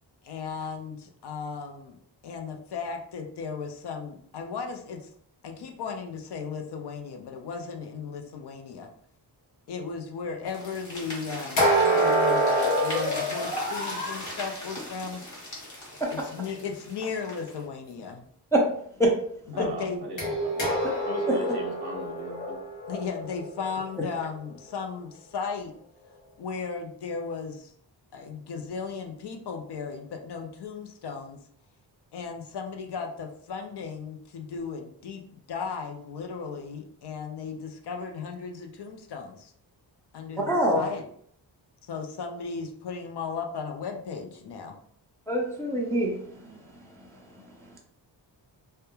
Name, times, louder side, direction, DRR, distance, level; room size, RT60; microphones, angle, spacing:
voice 1, 0.2-2.0 2.2-5.1 5.4-8.9 9.7-15.2 16.1-18.3 19.5-20.1 22.9-25.7 26.4-27.7 28.1-31.4 32.1-39.5 40.1-41.1 41.8-44.8, left 5 dB, 60° left, 0.5 m, -36 dB
sound 1, 10.5-17.6, left 1 dB, 40° left, 1.0 m, -39 dB
sound 2, 11.6-14.3 20.2-24.2, right 1 dB, 80° left, 0.9 m, -26 dB
voice 2, 19.5-22.6, right 1 dB, 55° right, 0.6 m, -37 dB
voice 3, 40.5-40.8 45.3-46.1 46.4-46.5, right 1 dB, 5° left, 0.3 m, -23 dB
2.2 x 2.2 x 2.9 m
wide cardioid pair, 130°, 45 cm